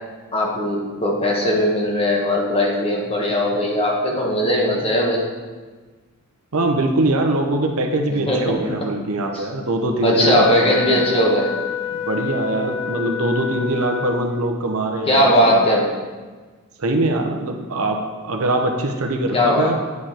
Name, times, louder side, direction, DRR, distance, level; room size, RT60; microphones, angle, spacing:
voice 1, 0.3-5.2 8.1-8.8 9.3-9.4 10.0-11.5 15.0-16.0 19.3-19.8, equal, 25° left, -1 dB, 1.3 m, -19 dB
voice 2, 6.5-11.1 11.9-15.6 16.8-19.8, right 2 dB, 70° right, 3 dB, 0.8 m, -22 dB
Wind instrument woodwind instrument, 10.2-14.6, left 7 dB, 10° right, 1.7 m, -28 dB
9.4 x 5.0 x 4.3 m, 1.4 s
head